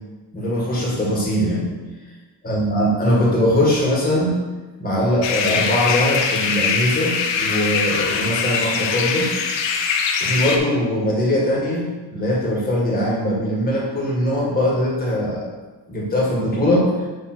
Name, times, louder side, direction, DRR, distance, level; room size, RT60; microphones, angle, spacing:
voice 1, 0.3-1.7 2.4-4.3 4.8-9.3 10.2-15.5 15.9-16.9, left 1 dB, 20° left, -5 dB, 1.9 m, -21 dB
sound 1, 5.2-10.6, left 6 dB, 80° left, 0.9 m, -22 dB
7.0 x 3.2 x 6.1 m, 1.3 s
cardioid pair, 175°, 44 cm